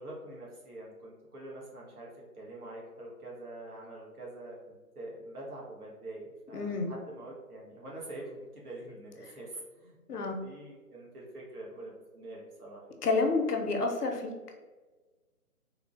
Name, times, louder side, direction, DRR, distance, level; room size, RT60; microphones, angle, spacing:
voice 1, 0.0-2.1 2.3-12.9, right 1 dB, 70° right, -4 dB, 1.3 m, -45 dB
voice 2, 6.5-6.9 10.1-10.4 13.0-14.3, left 3 dB, 80° left, 3 dB, 0.7 m, -29 dB
3.6 x 2.0 x 2.4 m, 1.3 s
figure-of-eight pair, 165°, 46 cm